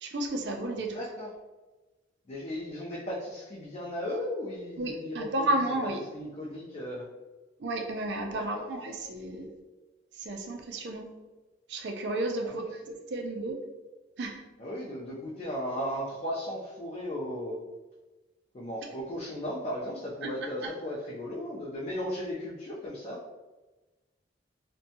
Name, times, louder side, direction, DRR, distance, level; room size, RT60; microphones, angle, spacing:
voice 1, 0.0-1.0 4.8-6.0 7.6-9.5 10.2-11.1 11.7-13.5 14.2-14.4, right 1 dB, 65° right, 3 dB, 0.4 m, -32 dB
voice 2, 0.8-1.3 2.3-5.6 6.1-7.0 8.3-8.7 12.4-12.7 14.6-17.6 18.5-23.2, equal, 35° left, -5 dB, 0.4 m, -36 dB
2.6 x 2.1 x 2.7 m, 1.2 s
head